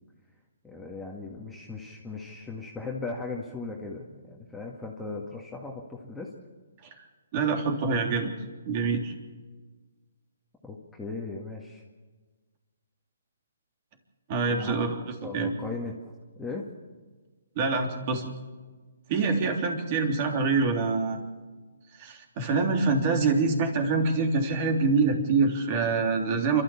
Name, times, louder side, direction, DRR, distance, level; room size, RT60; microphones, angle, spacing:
voice 1, 0.6-6.3 10.6-11.8 14.5-16.7, left 3 dB, 5° left, -3 dB, 2.0 m, -38 dB
voice 2, 7.3-8.3 8.7-9.1 14.3-15.0 15.3-15.5 17.6-18.3 19.1-21.2 22.0-26.6, right 4 dB, 35° right, 3 dB, 3.5 m, -25 dB
29.0 x 13.0 x 7.2 m, 1.4 s
hypercardioid pair, 140°, 0 cm